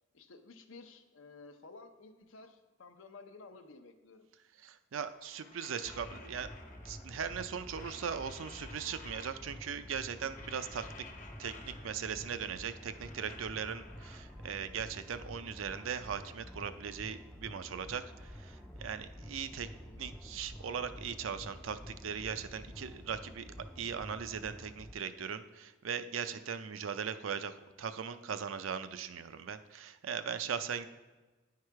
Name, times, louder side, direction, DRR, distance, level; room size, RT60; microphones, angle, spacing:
voice 1, 0.1-4.3 19.6-20.0, left 3 dB, 85° left, 7 dB, 0.7 m, -54 dB
voice 2, 4.6-6.5 6.8-10.9 11.4-19.7 20.0-30.9, right 7 dB, 90° right, 11 dB, 0.5 m, -39 dB
sound 1, 5.1-7.2 7.5-9.7 10.0-12.2 12.5-14.6 15.1-17.1 17.3-19.5, left 3 dB, 40° left, 0.8 m, -55 dB
sound 2, 5.8-24.9, equal, 5° left, 0.3 m, -49 dB
9.7 x 4.7 x 4.7 m, 1.2 s
head